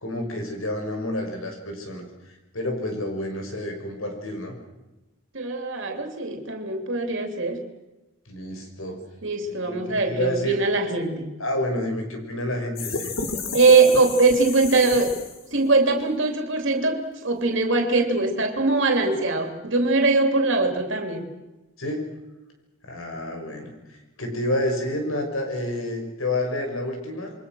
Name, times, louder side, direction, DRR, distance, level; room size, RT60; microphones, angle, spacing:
voice 1, 0.0-4.5 8.3-9.0 9.6-10.6 11.4-13.1 21.8-22.1 22.8-23.7 24.2-27.3, left 1 dB, 90° left, 4 dB, 6.4 m, -29 dB
voice 2, 5.3-7.6 9.2-11.4 13.5-15.2 15.5-21.3, right 3 dB, 65° right, 5 dB, 3.0 m, -21 dB
sound 1, 12.8-15.6, left 4 dB, 75° left, 3.4 m, -32 dB
28.0 x 23.5 x 6.3 m, 1.0 s
head